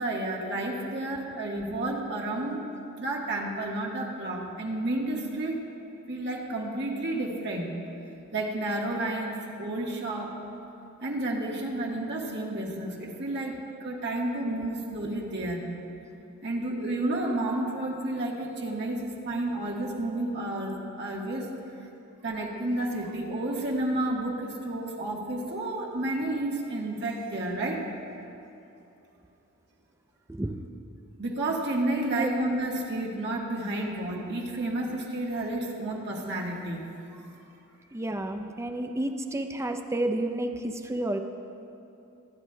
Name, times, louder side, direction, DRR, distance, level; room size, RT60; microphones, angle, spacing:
voice 1, 0.0-2.6 3.0-5.6 6.1-7.7 8.3-10.4 11.0-15.6 16.4-21.5 22.2-27.8 31.2-36.8 37.2-37.3, right 1 dB, 55° right, -2 dB, 1.4 m, -31 dB
voice 2, 37.9-41.2, right 1 dB, 15° right, 6 dB, 0.5 m, -30 dB
24.5 x 10.0 x 2.2 m, 2.8 s
head